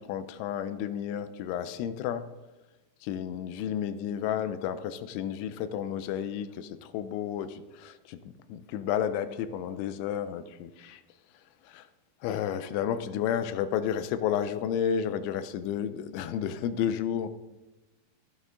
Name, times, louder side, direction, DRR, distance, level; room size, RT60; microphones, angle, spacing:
voice 1, 0.0-2.3 3.0-8.2 8.5-11.0 11.7-11.9 12.2-17.3, left 9 dB, 85° left, 12 dB, 3.1 m, -31 dB
11.5 x 11.5 x 3.8 m, 1.1 s
omnidirectional pair, 5.3 m